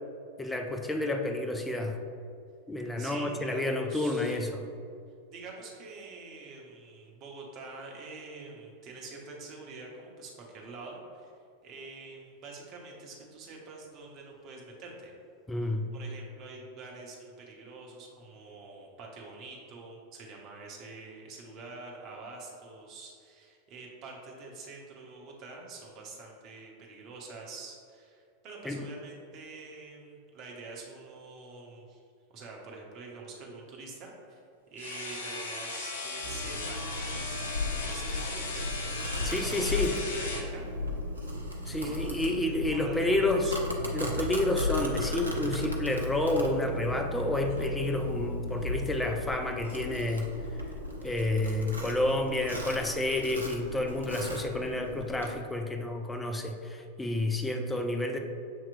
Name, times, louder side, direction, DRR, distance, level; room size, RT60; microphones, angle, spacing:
voice 1, 0.4-2.0 2.7-4.7 15.5-15.9 28.6-28.8 39.3-39.9 41.7-43.6 43.9-50.3 51.0-58.2, left 1 dB, 10° left, 3 dB, 0.4 m, -30 dB
voice 2, 3.0-4.4 5.3-11.3 11.6-15.1 15.9-32.0 32.3-34.4 34.7-36.8 37.4-40.7 41.8-42.1 42.4-43.6 45.5-45.7, right 3 dB, 40° right, -1 dB, 0.9 m, -46 dB
sound 1, 34.8-40.5, left 3 dB, 65° left, 0.6 m, -37 dB
Domestic sounds home sounds, 36.2-55.3, left 2 dB, 75° right, 0.5 m, -36 dB
7.0 x 2.9 x 2.5 m, 2.4 s
figure-of-eight pair, 90°, 0 cm